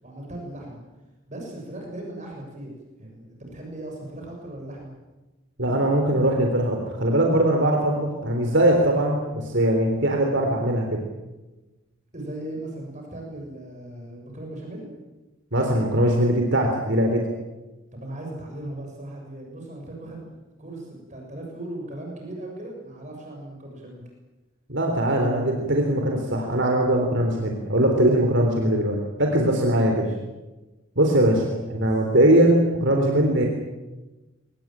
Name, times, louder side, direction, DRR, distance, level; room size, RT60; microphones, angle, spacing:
voice 1, 0.0-0.8 1.3-2.7 3.0-4.9 12.1-14.9 17.9-20.3 20.6-24.0 29.6-30.2 31.2-31.8, right 1 dB, 35° right, 0 dB, 6.8 m, -38 dB
voice 2, 5.6-11.0 15.5-17.3 24.7-30.0 31.0-31.4 31.7-33.4, right 1 dB, 60° right, 2 dB, 3.7 m, -21 dB
23.5 x 20.0 x 9.0 m, 1.1 s
head